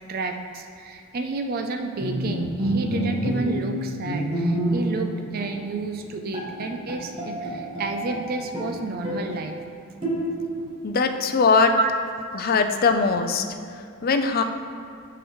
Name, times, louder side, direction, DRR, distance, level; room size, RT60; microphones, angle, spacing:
voice 1, 0.1-9.6 11.8-11.9, right 3 dB, 45° right, 5 dB, 0.4 m, -30 dB
Bowed string instrument, 2.0-5.1 5.4-5.6 6.0-6.1 6.3-8.2 8.5-9.4 10.0-10.6, equal, 25° right, 1.3 m, -27 dB
voice 2, 10.8-11.7 12.3-14.4, left 4 dB, 45° left, 7 dB, 0.5 m, -21 dB
12.5 x 4.9 x 3.1 m, 2.5 s
head